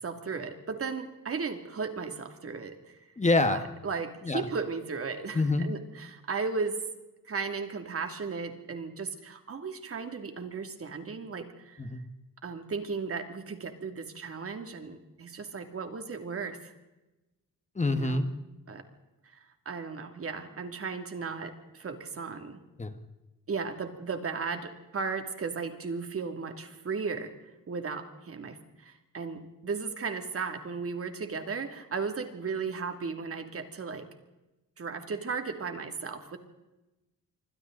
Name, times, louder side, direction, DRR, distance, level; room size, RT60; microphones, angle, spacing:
voice 1, 0.0-2.9 3.5-6.8 7.3-11.9 12.4-16.7 17.8-18.3 18.7-18.8 19.2-19.4 19.7-22.6 23.5-27.3 27.7-34.1 34.8-36.4, right 5 dB, 45° right, 6 dB, 2.6 m, -35 dB
voice 2, 3.2-3.6 4.2-4.4 5.3-5.7 11.8-12.1 17.7-18.3 22.8-23.0, left 2 dB, 20° left, 8 dB, 1.5 m, -26 dB
27.0 x 24.5 x 4.0 m, 1.0 s
wide cardioid pair, 140°, 32 cm